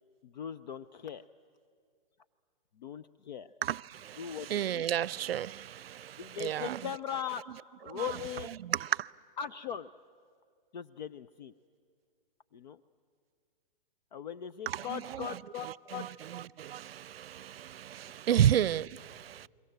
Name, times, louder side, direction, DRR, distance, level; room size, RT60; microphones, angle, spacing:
voice 1, 0.2-1.2 2.8-3.5 4.2-4.8 6.2-7.4 7.8-8.6 9.4-9.9 10.7-11.5 12.5-12.8 14.1-16.1 18.3-18.4, left 9 dB, 50° left, 0.6 m, -40 dB
voice 2, 3.6-6.8 7.9-8.1 8.7-9.1 14.7-15.3 15.6-16.1 16.6-19.5, right 10 dB, 80° right, 0.6 m, -32 dB
29.5 x 22.5 x 8.0 m
hypercardioid pair, 165°, 29 cm